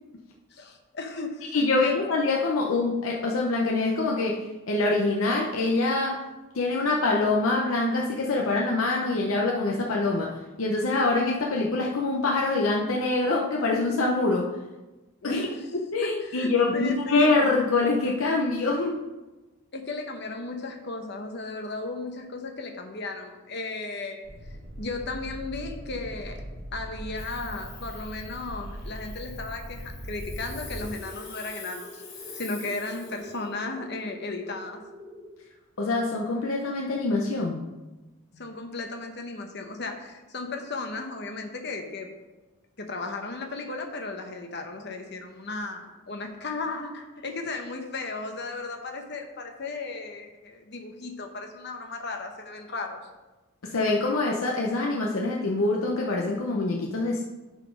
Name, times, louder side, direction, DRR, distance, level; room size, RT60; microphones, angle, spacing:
voice 1, 0.5-2.0 15.2-15.7 16.0-17.2 19.7-24.2 24.8-26.4 26.7-32.0 32.3-34.8 38.3-42.1 42.8-53.0, left 3 dB, 50° left, 3 dB, 1.0 m, -35 dB
voice 2, 1.5-6.2 6.5-14.5 15.2-15.4 15.9-19.0 35.8-37.7 53.6-57.2, left 3 dB, 70° left, -1 dB, 0.7 m, -25 dB
sound 1, 24.2-30.9, equal, 60° right, 1.8 m, -40 dB
Hiss, 27.2-33.5, left 5 dB, 85° left, 2.2 m, -46 dB
sound 2, 30.3-35.3, equal, ahead, 1.1 m, -46 dB
9.9 x 4.2 x 5.0 m, 1.1 s
head